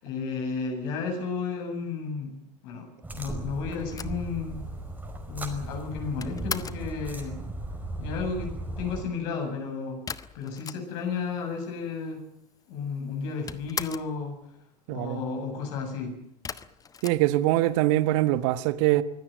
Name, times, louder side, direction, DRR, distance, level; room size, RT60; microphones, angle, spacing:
voice 1, 0.0-2.3 2.6-4.6 5.3-7.4 8.0-8.5 8.8-10.0 10.3-12.2 12.7-14.3 14.9-16.1, left 5 dB, 50° left, 7.5 m, -33 dB
sound 1, 3.0-9.0, right 2 dB, 10° right, 5.1 m, -37 dB
sound 2, 3.9-6.9 10.1-11.2 11.5-11.6 11.8-12.6 12.9-14.2 16.4-17.9, left 6 dB, 15° left, 1.1 m, -39 dB
voice 2, 14.9-15.2 17.0-19.0, right 16 dB, 50° right, 1.4 m, -23 dB
24.5 x 16.5 x 9.2 m
figure-of-eight pair, 95°, 21 cm